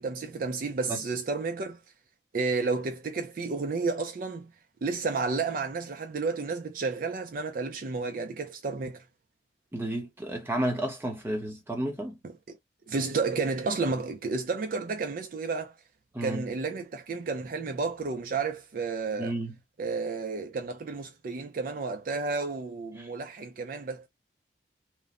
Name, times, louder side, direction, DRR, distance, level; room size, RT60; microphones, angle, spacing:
voice 1, 0.0-1.8 2.3-4.5 4.8-9.0 12.9-15.7 16.2-19.3 19.8-24.1, right 4 dB, 50° right, 0.4 m, -31 dB
voice 2, 9.7-12.2 16.1-16.5 19.2-19.5 23.0-23.1, right 1 dB, 15° right, 0.8 m, -32 dB
3.0 x 2.0 x 2.4 m
head